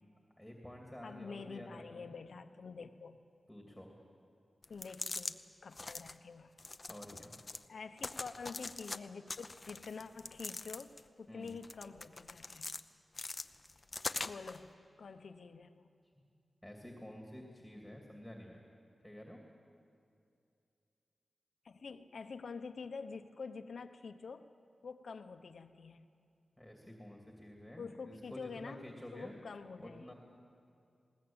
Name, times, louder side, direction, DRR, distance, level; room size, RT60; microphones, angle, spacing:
voice 1, 0.4-2.1 3.5-3.9 6.9-7.4 11.3-11.5 16.6-18.6 19.0-19.4 26.6-29.3 29.8-30.1, left 1 dB, 5° left, 1 dB, 2.7 m, -50 dB
voice 2, 1.0-3.2 4.7-6.5 7.7-12.7 14.2-14.7 15.0-15.9 21.6-24.5 24.8-26.1 27.8-28.8 29.1-30.1, left 5 dB, 75° left, 8 dB, 0.9 m, -47 dB
sound 1, 4.6-5.3 5.7-6.1 6.6-7.6 8.0-9.0 9.3-11.1 11.5-12.8 13.1-14.6, left 3 dB, 35° left, 0.7 m, -43 dB
21.0 x 19.0 x 8.9 m, 2.5 s
wide cardioid pair, 90°, 0 cm